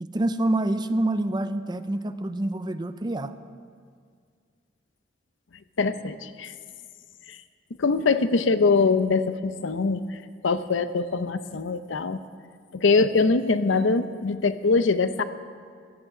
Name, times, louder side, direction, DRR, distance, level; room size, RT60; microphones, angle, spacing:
voice 1, 0.0-3.3, right 1 dB, 25° right, 11 dB, 0.5 m, -27 dB
voice 2, 5.8-6.5 7.3-7.4 7.8-10.2 10.4-12.2 12.7-15.2, left 4 dB, 90° left, 12 dB, 0.6 m, -23 dB
16.0 x 13.5 x 5.0 m, 2.1 s
head